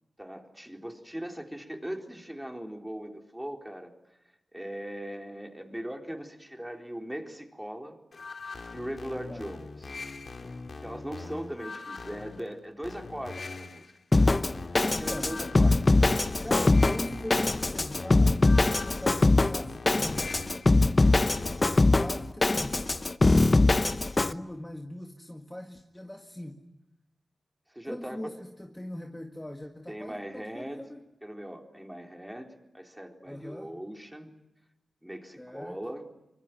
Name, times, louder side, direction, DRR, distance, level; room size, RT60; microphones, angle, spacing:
voice 1, 0.2-3.9 4.5-8.0 8.7-9.9 10.8-13.9 14.8-15.9 23.6-23.8 27.7-28.3 29.9-30.8 31.2-34.3 35.0-36.1, equal, 5° right, 3 dB, 4.0 m, -39 dB
sound 1, 8.1-21.9, left 3 dB, 55° left, 2.3 m, -42 dB
Drum kit, 14.1-24.3, left 2 dB, 35° left, 1.0 m, -23 dB
voice 2, 14.9-15.5 16.4-20.4 21.3-26.6 27.8-31.0 33.2-33.7 35.4-35.8, left 1 dB, 10° left, 3 dB, 1.9 m, -41 dB
25.0 x 24.5 x 9.4 m, 0.93 s
wide cardioid pair, 85°, 0 cm